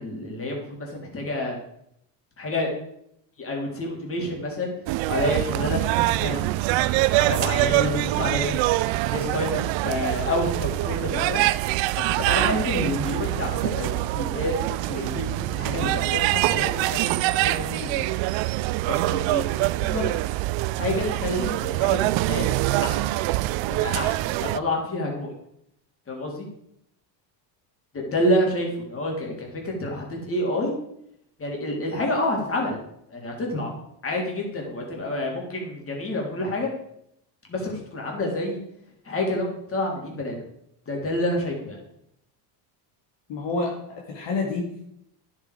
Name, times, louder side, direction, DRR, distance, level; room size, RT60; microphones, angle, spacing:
voice 1, 0.0-1.6 2.4-2.7 3.4-4.7 5.1-8.6 9.1-11.4 11.9-18.1 18.8-20.0 20.8-22.6 22.8-23.0 23.7-25.3 26.1-26.5 27.9-30.7 31.4-32.8 33.1-33.7 34.0-36.7 37.5-38.6 39.0-40.4 40.9-41.8, left 1 dB, 25° left, -1 dB, 3.2 m, -28 dB
sound 1, 4.9-24.6, right 18 dB, 65° right, 0.5 m, -24 dB
voice 2, 43.3-44.8, left 3 dB, 60° left, 0 dB, 2.1 m, -29 dB
10.0 x 7.5 x 4.9 m, 0.75 s
cardioid pair, 115°, 50 cm